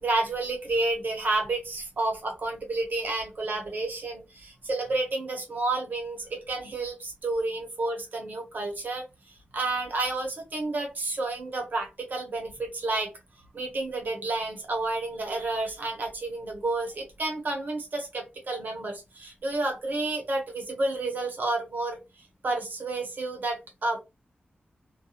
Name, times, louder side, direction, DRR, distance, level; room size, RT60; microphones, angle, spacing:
voice 1, 0.0-9.0 9.5-13.1 13.5-22.0 22.4-24.0, right 2 dB, 55° right, 2 dB, 0.9 m, -30 dB
2.4 x 2.2 x 2.8 m, 0.24 s
wide cardioid pair, 130°, 4 cm